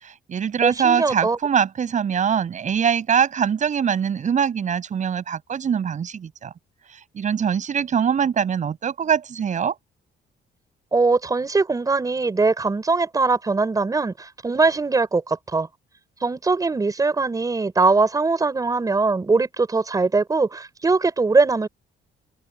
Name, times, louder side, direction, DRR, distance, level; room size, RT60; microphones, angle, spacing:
voice 1, 0.0-6.5 7.1-9.7, right 7 dB, 40° right, 6.6 m, -23 dB
voice 2, 0.6-1.4 10.9-15.7 16.2-21.7, right 3 dB, 20° right, 6.4 m, -21 dB
open air
cardioid pair, 170°, 19 cm